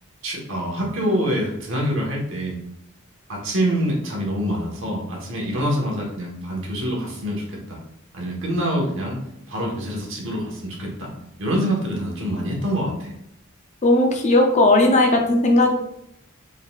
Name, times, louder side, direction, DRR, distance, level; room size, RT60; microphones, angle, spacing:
voice 1, 0.2-2.6 3.3-7.8 8.1-9.2 9.5-11.1 11.4-13.1, equal, 60° right, -1 dB, 1.2 m, -25 dB
voice 2, 13.8-15.7, left 2 dB, 35° left, 3 dB, 0.5 m, -16 dB
4.0 x 3.8 x 2.3 m, 0.76 s
head